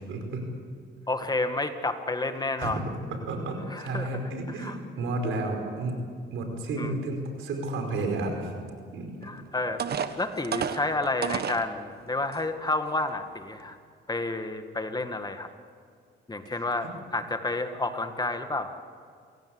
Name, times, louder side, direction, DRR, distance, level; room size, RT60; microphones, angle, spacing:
voice 1, 0.1-0.4 2.6-6.0 6.3-8.5 8.9-9.1 16.5-16.6, right 2 dB, 85° right, 4 dB, 5.1 m, -32 dB
voice 2, 1.1-2.8 3.7-4.1 4.6-4.8 6.8-6.9 9.2-9.8 10.2-13.8 14.1-15.5 16.3-16.9 17.1-18.7, left 2 dB, 20° left, 7 dB, 1.8 m, -30 dB
sound 1, 9.2-9.3 9.8-11.6 12.3-12.4 12.9-13.1, right 7 dB, 55° right, 1.5 m, -31 dB
29.0 x 17.0 x 8.0 m, 2.2 s
cardioid pair, 90°, 20 cm